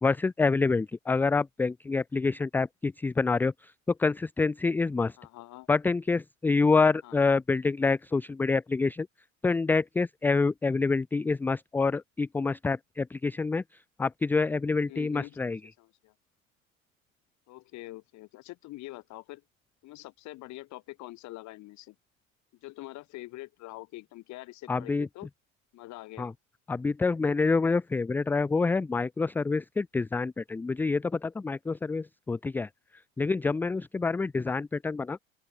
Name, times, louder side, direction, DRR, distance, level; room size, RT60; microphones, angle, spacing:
voice 1, 0.0-3.5 4.0-5.2 5.7-9.1 9.4-13.6 14.0-15.6 24.7-25.1 26.2-26.3 26.7-32.7 33.2-35.2, left 4 dB, 5° left, 0.4 m, -27 dB
voice 2, 5.2-5.7 7.0-7.3 14.7-16.1 17.5-19.4 19.8-21.9 22.6-25.3 25.7-26.3, left 18 dB, 45° left, 6.9 m, -45 dB
open air
figure-of-eight pair, 85°, 40 cm